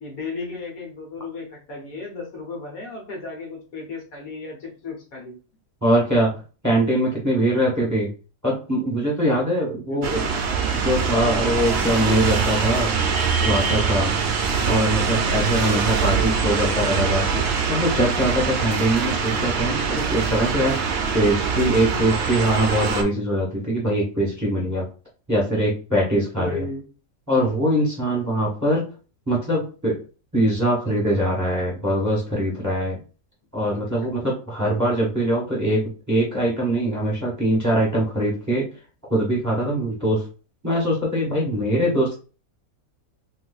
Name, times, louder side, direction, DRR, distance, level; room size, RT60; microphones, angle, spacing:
voice 1, 0.0-5.4 9.9-10.3 26.3-26.8 34.0-34.1, left 3 dB, 80° left, 1 dB, 1.6 m, -34 dB
voice 2, 5.8-6.3 6.6-8.1 8.4-10.2 10.7-12.9 13.4-14.1 14.7-20.8 21.1-24.9 25.3-26.6 27.3-28.8 29.3-30.0 30.3-33.0 33.5-38.7 39.1-40.3 40.6-42.1, right 1 dB, 15° right, -3 dB, 0.9 m, -22 dB
sound 1, 10.0-23.0, right 5 dB, 60° right, 0.7 m, -23 dB
3.8 x 2.6 x 2.3 m, 0.35 s
omnidirectional pair, 1.5 m